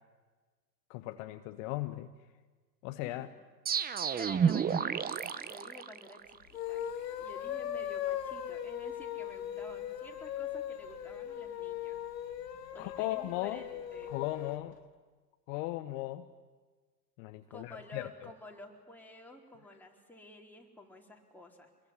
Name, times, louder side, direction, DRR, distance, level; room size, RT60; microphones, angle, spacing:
voice 1, 0.9-2.1 2.8-3.3 12.8-13.6 14.1-14.8 15.5-16.3 17.2-18.1, left 17 dB, 50° left, 9 dB, 1.2 m, -37 dB
voice 2, 3.0-3.3 4.2-6.9 7.2-12.0 12.7-14.1 17.5-21.7, left 2 dB, 5° left, 0 dB, 4.4 m, -51 dB
sound 1, 3.7-6.4, right 7 dB, 20° right, 0.9 m, -31 dB
sound 2, 6.4-14.6, left 10 dB, 75° left, 2.2 m, -39 dB
26.0 x 21.5 x 9.9 m, 1.4 s
hypercardioid pair, 100°, 50 cm